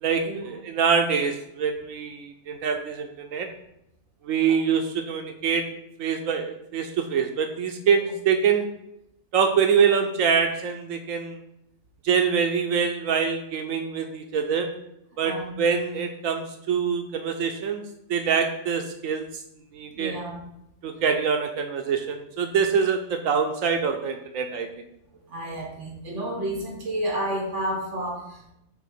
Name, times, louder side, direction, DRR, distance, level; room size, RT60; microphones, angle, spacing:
voice 1, 0.0-3.5 4.2-5.7 6.0-8.7 9.3-11.4 12.0-14.7 15.2-17.8 18.1-19.4 19.7-20.2 20.8-24.9, right 6 dB, 80° right, 5 dB, 1.1 m, -25 dB
voice 2, 15.2-15.5 19.9-20.4 25.3-28.5, right 1 dB, 60° right, 0 dB, 1.7 m, -31 dB
7.6 x 3.6 x 5.4 m, 0.82 s
omnidirectional pair, 1.4 m